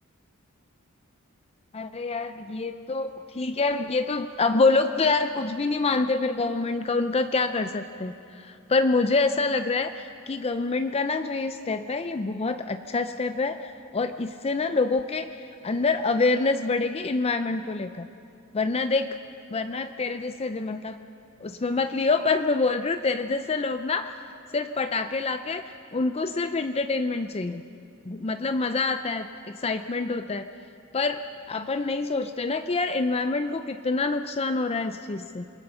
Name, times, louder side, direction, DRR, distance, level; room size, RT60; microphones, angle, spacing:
voice 1, 1.7-15.3 15.6-18.1 18.5-19.2 19.5-21.0 21.4-24.2 24.5-27.6 28.1-30.5 30.9-35.4, left 3 dB, 30° left, 8 dB, 0.5 m, -26 dB
27.5 x 21.0 x 5.6 m, 2.6 s
head